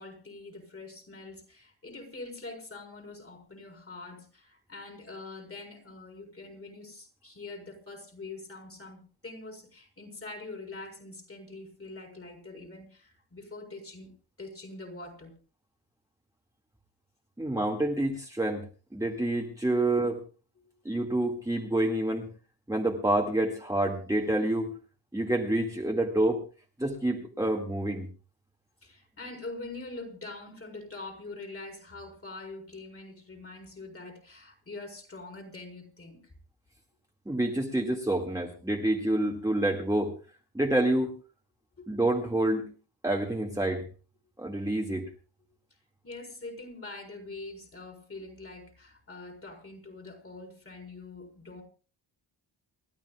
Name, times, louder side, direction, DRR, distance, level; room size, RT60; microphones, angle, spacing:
voice 1, 0.0-14.1 14.4-15.4 20.6-20.7 28.8-36.3 41.8-42.0 46.0-51.6, left 3 dB, 35° left, 4.5 m, -44 dB
voice 2, 17.4-18.7 18.9-20.2 20.9-22.3 22.7-24.8 25.1-26.4 26.8-28.1 37.3-40.1 40.5-41.1 41.9-42.6 43.0-43.8 44.4-45.1, right 1 dB, 10° right, 1.9 m, -28 dB
29.0 x 12.5 x 2.3 m
wide cardioid pair, 140°, 41 cm